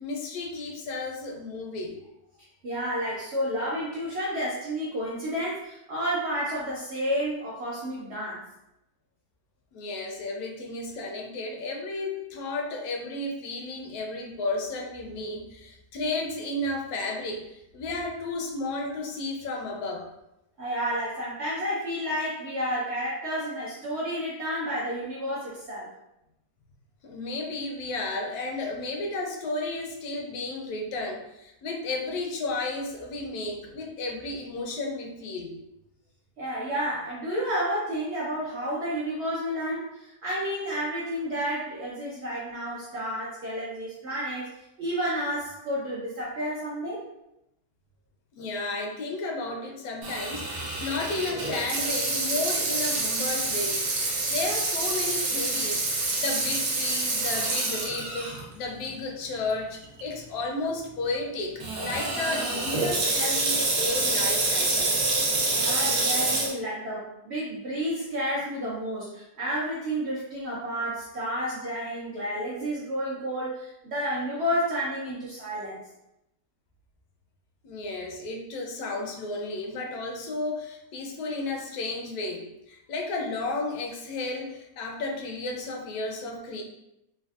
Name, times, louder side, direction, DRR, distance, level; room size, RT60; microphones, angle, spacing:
voice 1, 0.0-2.0 9.7-20.1 27.0-35.5 48.4-65.0 77.6-86.6, left 2 dB, 75° left, 1 dB, 1.0 m, -33 dB
voice 2, 2.6-8.4 20.6-25.9 36.4-47.0 65.5-75.8, equal, 60° right, -6 dB, 0.7 m, -31 dB
Water tap faucet / Sink (filling or washing), 50.0-58.4 58.9-59.0 59.7-60.0 61.6-66.5, right 2 dB, 85° right, 1.3 m, -27 dB
3.4 x 2.2 x 2.3 m, 0.85 s
omnidirectional pair, 1.7 m